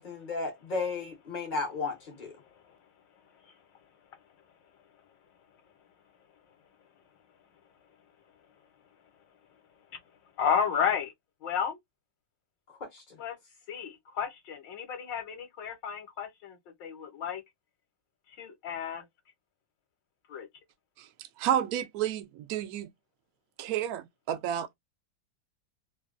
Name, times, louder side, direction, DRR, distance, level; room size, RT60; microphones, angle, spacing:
voice 1, 0.0-2.3 12.8-13.0, left 4 dB, 45° left, 0.6 m, -34 dB
voice 2, 10.4-11.1 11.4-11.8 13.2-13.3 13.7-17.4 18.3-19.0 20.3-20.5, left 7 dB, 70° left, 1.3 m, -32 dB
voice 3, 21.0-22.9 23.6-24.7, right 10 dB, 75° right, 0.8 m, -31 dB
3.2 x 2.2 x 2.4 m
omnidirectional pair, 2.2 m